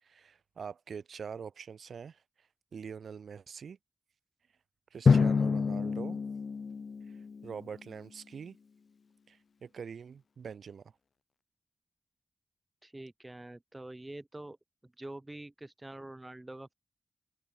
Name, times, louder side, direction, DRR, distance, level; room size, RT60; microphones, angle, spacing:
voice 1, 0.0-2.2 2.7-3.8 4.9-6.2 7.1-8.6 9.3-10.9, right 6 dB, 90° right, 1.1 m, -44 dB
Drum, 5.1-7.8, left 5 dB, 70° left, 0.6 m, -27 dB
voice 2, 12.8-14.6 14.8-16.7, right 1 dB, 20° right, 2.4 m, -46 dB
cardioid pair, 65°, 0 cm